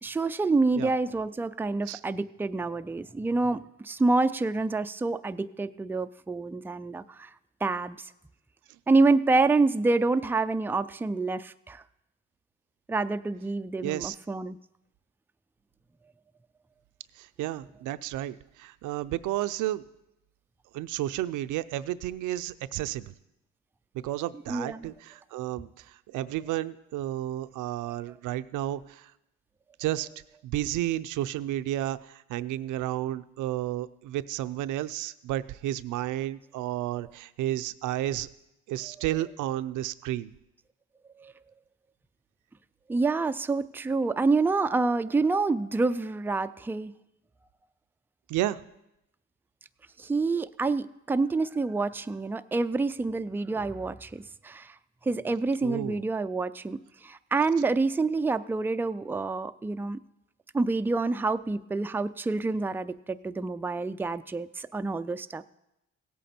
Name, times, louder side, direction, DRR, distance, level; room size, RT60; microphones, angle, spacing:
voice 1, 0.0-7.3 7.6-8.1 8.9-11.8 12.9-14.6 24.5-24.9 41.2-41.3 42.9-46.9 50.0-54.7 55.0-60.0 60.5-65.4, right 3 dB, 5° right, 10 dB, 0.3 m, -27 dB
voice 2, 13.8-14.2 17.2-19.8 20.7-23.1 23.9-29.1 29.8-30.1 30.4-38.3 38.7-40.3 48.3-48.6 55.6-56.0, right 14 dB, 85° right, 14 dB, 0.5 m, -32 dB
17.0 x 8.3 x 4.3 m, 0.88 s
cardioid pair, 90°, 30 cm